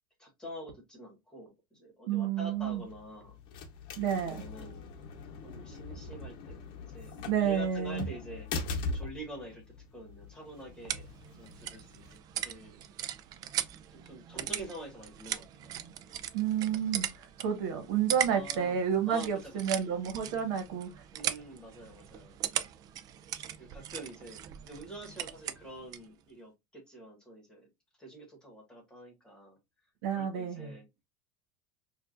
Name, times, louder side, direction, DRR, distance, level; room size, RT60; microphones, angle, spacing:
voice 1, 0.2-3.4 4.1-4.9 5.4-9.6 9.9-12.1 12.4-12.8 13.7-15.8 18.3-18.8 19.1-19.9 21.1-22.4 23.5-27.7 28.0-29.6 30.1-30.8, right 1 dB, 5° left, 1.5 m, -47 dB
voice 2, 2.1-2.8 4.0-4.4 7.3-8.1 16.3-20.9 30.0-30.7, right 8 dB, 70° right, 1.2 m, -30 dB
sound 1, 2.5-12.2, left 3 dB, 45° left, 0.8 m, -41 dB
sound 2, 10.3-26.1, right 11 dB, 35° right, 0.4 m, -39 dB
4.5 x 2.5 x 2.4 m
supercardioid pair, 155°, 11 cm